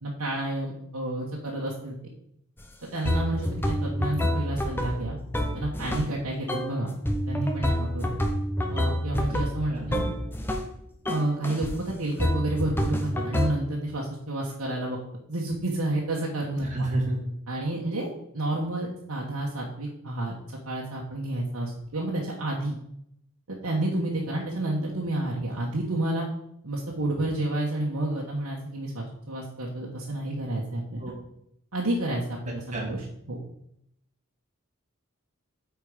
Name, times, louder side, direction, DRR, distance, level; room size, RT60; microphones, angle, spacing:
voice 1, 0.0-2.0 2.8-5.2 5.5-6.9 7.3-8.1 8.7-10.0 11.1-15.0 15.3-16.7 17.5-22.7 23.5-26.3 26.6-31.0 31.7-33.0 33.3-33.4, right 1 dB, 85° right, -4 dB, 1.3 m, -30 dB
sound 1, 2.6-2.7 3.0-6.1 6.5-6.8 7.0-10.7 11.0-11.8 12.2-13.5, equal, 10° left, 0.8 m, -28 dB
voice 2, 16.6-17.2 31.0-31.1 32.7-32.9, right 2 dB, 35° right, -1 dB, 2.1 m, -30 dB
8.4 x 4.7 x 5.0 m, 0.75 s
head